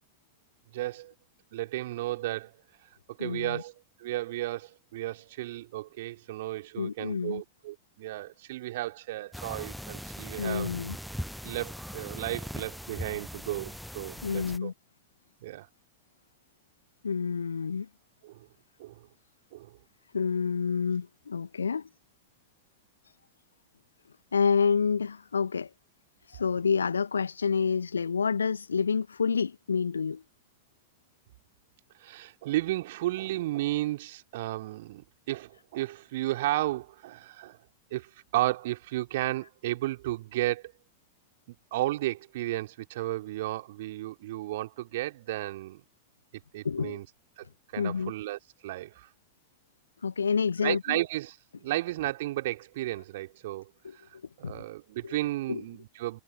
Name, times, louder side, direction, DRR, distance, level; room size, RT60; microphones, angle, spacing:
voice 1, 0.7-1.1 1.5-2.6 3.2-3.7 4.0-10.7 11.4-14.7 15.4-15.7 18.2-18.5 18.8-19.1 19.5-19.8 32.0-37.6 37.9-40.7 41.5-45.8 46.5-47.1 47.4-47.5 47.7-49.1 50.6-53.7 54.4-56.2, right 16 dB, 55° right, 3.0 m, -33 dB
voice 2, 3.2-3.6 6.8-7.4 10.4-11.0 14.2-14.7 17.0-17.9 20.1-21.9 24.3-25.7 26.3-30.2 46.6-47.0 47.8-48.1 50.0-51.0 53.8-53.9 54.4-54.5 55.0-55.2 55.5-55.6, left 5 dB, 75° left, 1.0 m, -28 dB
sound 1, 9.3-14.6, equal, ahead, 0.8 m, -40 dB
figure-of-eight pair, 90°, 0 cm